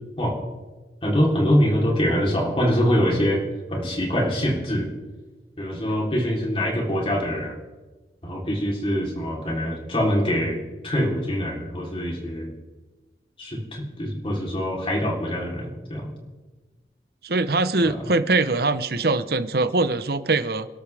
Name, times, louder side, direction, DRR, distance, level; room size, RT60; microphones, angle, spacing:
voice 1, 1.0-3.4 3.7-4.9 5.6-7.6 8.2-10.6 10.8-12.5 13.4-16.1 17.8-18.0, equal, 30° left, -1 dB, 3.7 m, -24 dB
voice 2, 17.2-20.7, right 3 dB, 55° right, 11 dB, 0.9 m, -22 dB
29.0 x 12.5 x 3.5 m, 1.2 s
head